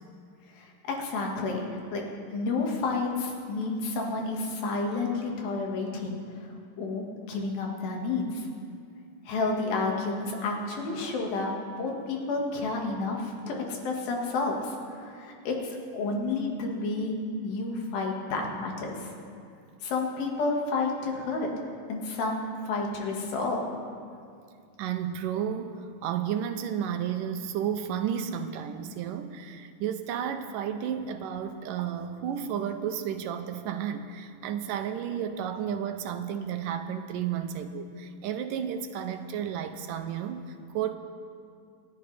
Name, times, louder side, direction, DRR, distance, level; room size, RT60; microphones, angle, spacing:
voice 1, 0.5-1.6 1.9-8.5 9.3-11.5 11.8-19.1 19.8-21.5 21.9-23.7, left 3 dB, 90° left, 0 dB, 3.5 m, -30 dB
voice 2, 24.8-40.9, right 8 dB, 80° right, 7 dB, 2.2 m, -32 dB
28.5 x 11.0 x 3.3 m, 2.3 s
omnidirectional pair, 4.0 m